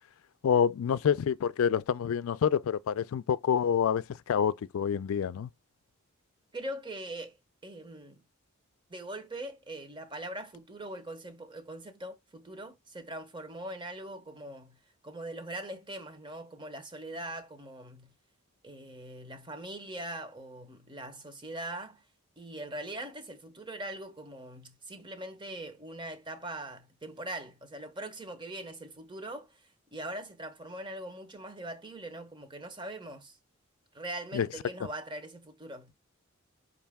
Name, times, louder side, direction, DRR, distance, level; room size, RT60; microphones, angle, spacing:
voice 1, 0.4-5.5 34.3-34.5, left 7 dB, 85° left, 0.4 m, -27 dB
voice 2, 6.5-7.4 7.6-8.2 8.9-14.8 15.0-18.1 18.6-22.0 22.4-33.4 33.9-35.9, right 1 dB, 20° right, 0.8 m, -41 dB
5.4 x 2.5 x 3.5 m
head